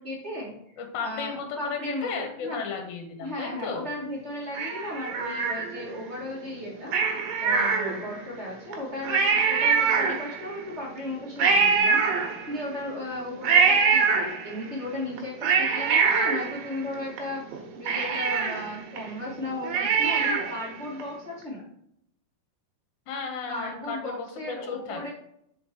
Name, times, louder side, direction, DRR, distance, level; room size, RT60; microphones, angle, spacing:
voice 1, 0.0-0.7 1.0-2.6 3.2-6.9 7.4-12.0 12.5-17.4 17.7-21.7 23.5-25.1, left 1 dB, 30° right, -6 dB, 1.4 m, -35 dB
voice 2, 0.8-3.9 23.1-25.1, left 5 dB, 65° left, 3 dB, 2.3 m, -34 dB
Cat, 4.5-6.0 6.9-8.3 8.7-8.8 9.0-10.5 11.4-12.7 13.4-14.7 15.2-17.2 17.5-17.6 17.9-20.6 21.0-21.1, right 5 dB, 75° right, 2.8 m, -24 dB
5.2 x 5.2 x 4.4 m, 0.73 s
omnidirectional pair, 4.4 m